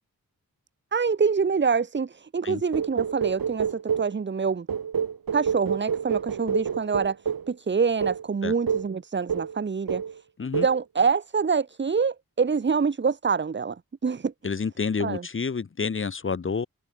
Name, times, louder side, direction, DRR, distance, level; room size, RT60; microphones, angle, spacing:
voice 1, 0.9-4.7 5.3-7.2 7.5-10.0 10.6-14.3 15.0-15.3, right 5 dB, 30° right, 0.6 m, -25 dB
sound 1, 2.7-4.2 4.7-7.5 8.0-8.2 8.7-8.9 9.3-9.6 9.9-10.2 10.5-10.8, right 7 dB, 70° right, 1.0 m, -28 dB
voice 2, 14.4-16.7, left 5 dB, 35° left, 0.6 m, -29 dB
wide cardioid pair, 70°, 36 cm